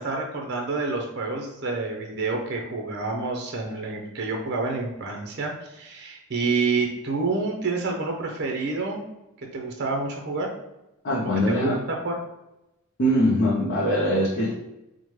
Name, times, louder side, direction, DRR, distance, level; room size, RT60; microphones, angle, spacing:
voice 1, 0.0-9.0 9.4-10.5 11.5-12.1, right 3 dB, 50° right, 1 dB, 0.6 m, -28 dB
voice 2, 11.0-11.8 13.0-14.5, equal, 50° left, -3 dB, 0.5 m, -22 dB
4.7 x 2.1 x 3.1 m, 0.92 s
head